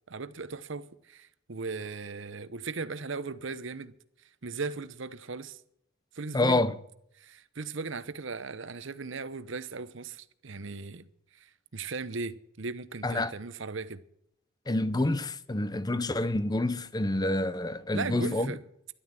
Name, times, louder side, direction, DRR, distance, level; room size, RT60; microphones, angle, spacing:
voice 1, 0.1-3.9 4.4-5.6 6.1-6.7 7.2-11.1 11.3-14.0 17.9-18.6, right 4 dB, 60° right, 0.8 m, -37 dB
voice 2, 6.3-6.8 13.0-13.3 14.7-18.5, left 2 dB, 20° left, 0.6 m, -28 dB
13.0 x 11.5 x 7.6 m
head